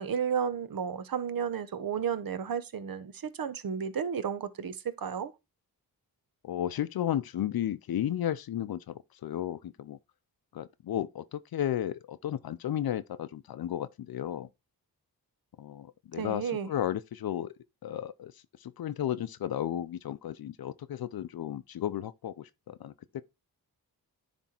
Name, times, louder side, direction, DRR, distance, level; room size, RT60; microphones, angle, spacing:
voice 1, 0.0-5.3 16.2-16.7, right 7 dB, 65° right, 0.9 m, -33 dB
voice 2, 6.4-10.0 10.5-14.5 15.6-17.5 17.8-18.3 18.6-23.2, left 11 dB, 70° left, 0.5 m, -34 dB
10.0 x 3.5 x 4.3 m
wide cardioid pair, 85°, 38 cm